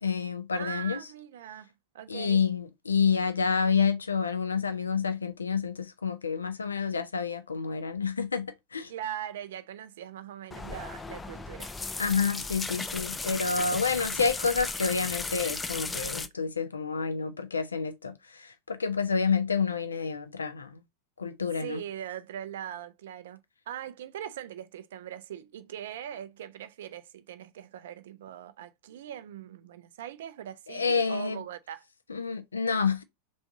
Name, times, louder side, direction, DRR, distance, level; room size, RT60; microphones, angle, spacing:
voice 1, 0.0-1.0 2.1-8.9 12.0-20.8 21.2-21.8 30.7-31.4 32.1-33.0, left 5 dB, 75° left, 0.6 m, -29 dB
voice 2, 0.5-2.4 8.9-11.7 21.6-31.9, right 10 dB, 60° right, 0.4 m, -41 dB
sound 1, 10.5-16.3, left 3 dB, 10° left, 0.4 m, -35 dB
3.5 x 2.5 x 4.5 m
figure-of-eight pair, 90°, 0 cm